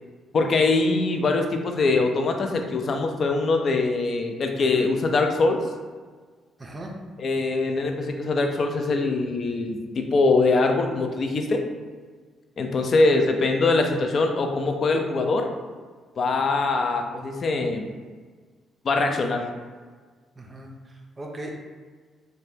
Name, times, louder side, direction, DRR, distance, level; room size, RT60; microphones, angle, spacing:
voice 1, 0.3-5.6 7.2-11.6 12.6-15.5 16.2-17.8 18.8-19.5, left 3 dB, 50° left, 4 dB, 0.4 m, -23 dB
voice 2, 6.6-6.9 20.3-21.5, right 1 dB, 25° right, 0 dB, 0.5 m, -38 dB
3.2 x 2.1 x 2.7 m, 1.5 s
cardioid pair, 90°, 0 cm